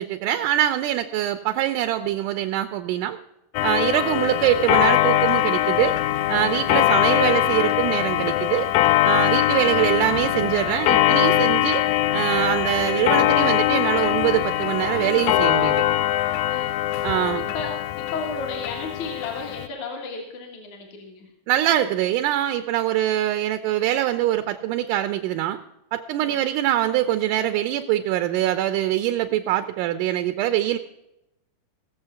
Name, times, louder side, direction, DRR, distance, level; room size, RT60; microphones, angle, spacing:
voice 1, 0.0-3.2 3.6-6.0 6.3-8.7 9.0-11.8 12.1-15.8 17.0-17.5 21.5-25.6 25.9-30.8, right 12 dB, 80° right, 8 dB, 2.0 m, -23 dB
Clock, 3.5-19.7, left 14 dB, 90° left, 1.6 m, -22 dB
voice 2, 16.5-17.1 17.5-17.7 18.1-21.3 26.2-26.4, left 4 dB, 60° left, 1 dB, 2.9 m, -34 dB
17.0 x 7.3 x 5.7 m, 0.89 s
omnidirectional pair, 4.0 m